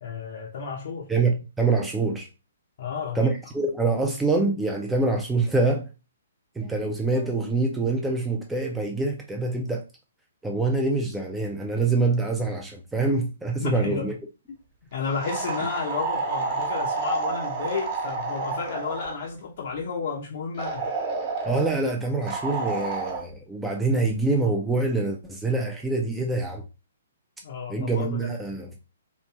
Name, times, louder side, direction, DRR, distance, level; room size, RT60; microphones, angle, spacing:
voice 1, 0.0-1.1 2.8-3.3 13.6-14.1 14.9-20.9 27.4-28.3, left 5 dB, 50° left, 0.5 m, -32 dB
voice 2, 1.1-2.3 3.1-5.9 6.6-9.8 10.4-14.2 21.4-26.6 27.7-28.8, right 3 dB, 5° right, 0.4 m, -25 dB
sound 1, 15.2-19.2 20.6-21.7 22.3-23.2, right 4 dB, 40° right, 1.0 m, -29 dB
3.0 x 2.5 x 2.2 m
figure-of-eight pair, 125°, 0 cm